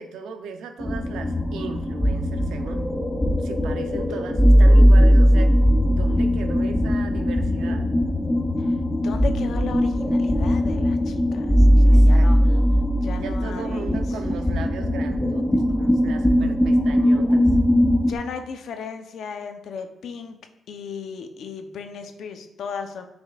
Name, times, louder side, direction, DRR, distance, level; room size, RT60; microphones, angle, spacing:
voice 1, 0.0-2.9 3.4-5.6 5.9-7.9 11.7-12.7 13.2-17.5, right 6 dB, 85° right, 7 dB, 0.6 m, -37 dB
sound 1, 0.8-18.1, equal, 15° left, 0.6 m, -19 dB
voice 2, 9.0-12.4 13.0-14.2 18.0-20.4 20.7-23.1, left 6 dB, 70° left, 7 dB, 0.7 m, -35 dB
9.0 x 5.2 x 2.4 m, 0.92 s
cardioid pair, 105°, 0 cm